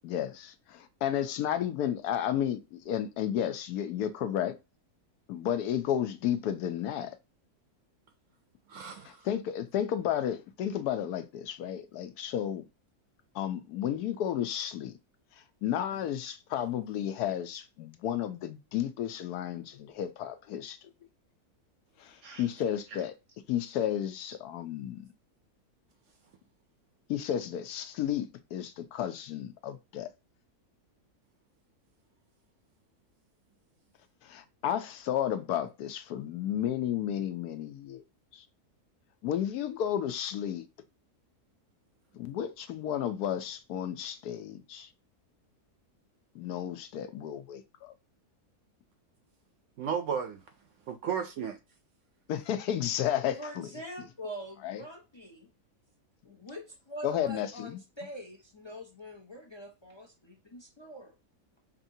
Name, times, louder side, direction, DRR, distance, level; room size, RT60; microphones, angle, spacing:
voice 1, 0.0-4.6 5.3-7.2 9.0-12.6 13.3-15.0 15.6-20.8 22.0-23.1 23.5-25.1 27.1-30.1 34.2-38.0 38.3-38.4 39.2-40.7 42.1-44.9 46.3-47.9 52.3-53.7 54.6-54.8 57.0-57.7, left 10 dB, 80° left, 1.1 m, -32 dB
voice 2, 8.7-9.3 22.2-22.5 49.8-50.4 50.9-51.6, right 7 dB, 70° right, 0.8 m, -34 dB
voice 3, 53.4-55.5 56.2-61.1, equal, 45° left, 0.3 m, -44 dB
4.9 x 2.7 x 2.7 m
omnidirectional pair, 1.6 m